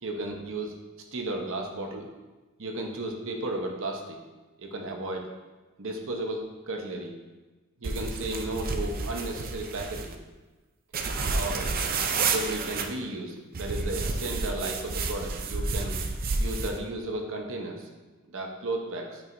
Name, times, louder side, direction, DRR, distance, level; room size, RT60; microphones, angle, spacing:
voice 1, 0.0-0.8 1.1-2.1 2.6-4.2 4.6-5.3 5.8-7.1 7.8-10.2 11.3-11.7 12.1-16.0 16.4-17.9 18.3-19.2, right 2 dB, 65° right, 2 dB, 1.0 m, -34 dB
sound 1, 7.8-10.1 10.9-12.9 13.5-16.8, right 3 dB, 45° right, 0.5 m, -30 dB
9.0 x 4.8 x 2.7 m, 1.2 s
head